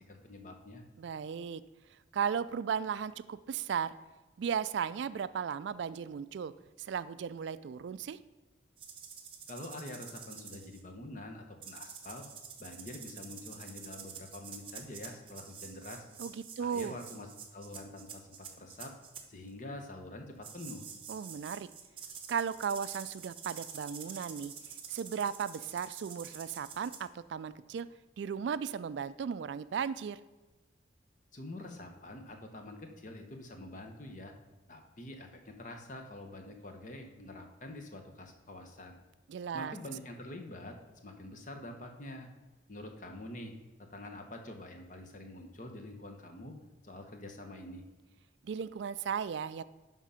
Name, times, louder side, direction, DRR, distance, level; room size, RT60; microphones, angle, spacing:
voice 1, 0.0-0.8 9.5-12.3 12.6-16.1 16.6-18.9 19.3-20.8 31.3-34.3 34.7-39.0 39.5-40.7 41.0-42.3 42.7-43.5 43.9-46.6 46.8-47.9, left 1 dB, 40° left, 4 dB, 1.0 m, -46 dB
voice 2, 1.0-1.6 2.1-3.9 4.4-6.5 6.8-8.2 16.2-16.9 21.1-21.7 22.3-24.5 24.9-27.9 28.2-30.2 39.3-39.7 48.4-49.6, right 7 dB, 70° right, 15 dB, 0.3 m, -36 dB
sound 1, 8.8-10.8 11.6-19.2 20.4-27.0, right 7 dB, 30° right, 0.8 m, -48 dB
11.0 x 3.7 x 5.6 m, 1.2 s
head